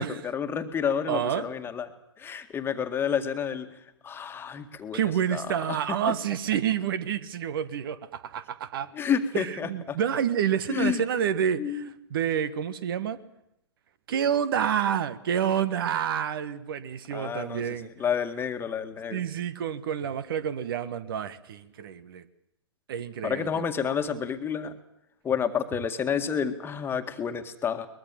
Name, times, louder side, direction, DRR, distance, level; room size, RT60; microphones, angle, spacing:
voice 1, 0.0-1.9 2.2-3.7 4.0-5.0 5.3-5.8 8.9-10.0 10.7-11.0 11.6-11.9 17.1-19.2 23.2-24.8 25.2-27.9, left 7 dB, 15° left, 7 dB, 1.9 m, -30 dB
voice 2, 1.1-1.4 4.9-8.9 9.3-13.2 14.1-17.9 19.1-22.2 22.9-23.6, right 9 dB, 50° right, 16 dB, 1.5 m, -28 dB
22.5 x 21.5 x 7.5 m, 0.81 s
figure-of-eight pair, 115°, 15 cm